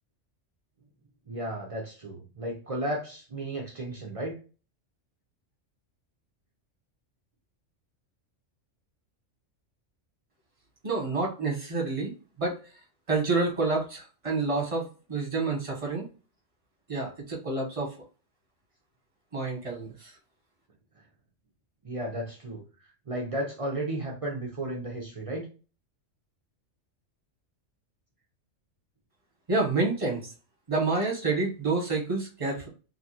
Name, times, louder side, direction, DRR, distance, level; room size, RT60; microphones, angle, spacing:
voice 1, 1.3-4.3 21.8-22.6 23.1-25.4, right 1 dB, 45° right, 0 dB, 0.4 m, -34 dB
voice 2, 10.8-12.1 12.4-12.5 13.1-16.0 16.9-17.9 19.3-20.1 29.5-30.2 30.7-32.7, right 3 dB, 30° right, -1 dB, 1.0 m, -28 dB
3.1 x 2.4 x 2.7 m, 0.35 s
omnidirectional pair, 1.3 m